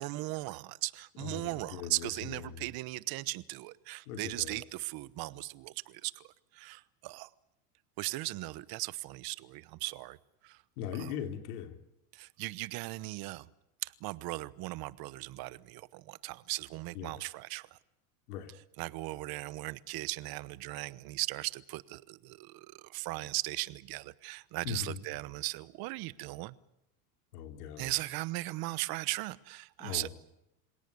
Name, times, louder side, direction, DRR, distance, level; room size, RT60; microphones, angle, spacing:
voice 1, 0.0-6.2 6.5-7.3 8.0-10.2 10.4-10.6 11.0-11.1 12.1-13.5 13.8-17.8 18.8-26.5 27.8-30.1, right 20 dB, 50° right, 18 dB, 1.1 m, -38 dB
voice 2, 1.2-2.6 4.1-4.6 10.8-11.8 16.9-17.2 18.3-18.5 24.6-25.0 27.3-27.9 29.8-30.1, left 8 dB, 80° left, 6 dB, 3.3 m, -40 dB
26.0 x 18.0 x 9.6 m, 0.87 s
supercardioid pair, 115°, 45 cm